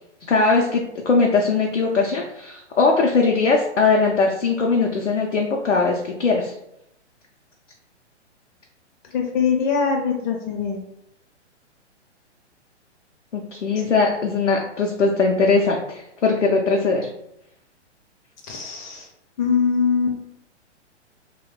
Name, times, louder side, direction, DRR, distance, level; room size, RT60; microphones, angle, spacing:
voice 1, 0.3-6.5 13.3-17.1, left 4 dB, 85° left, 0 dB, 0.6 m, -20 dB
voice 2, 9.1-10.8 18.5-19.1 19.4-20.2, left 6 dB, 45° left, 1 dB, 0.6 m, -22 dB
2.9 x 2.2 x 3.5 m, 0.77 s
figure-of-eight pair, 120°, 36 cm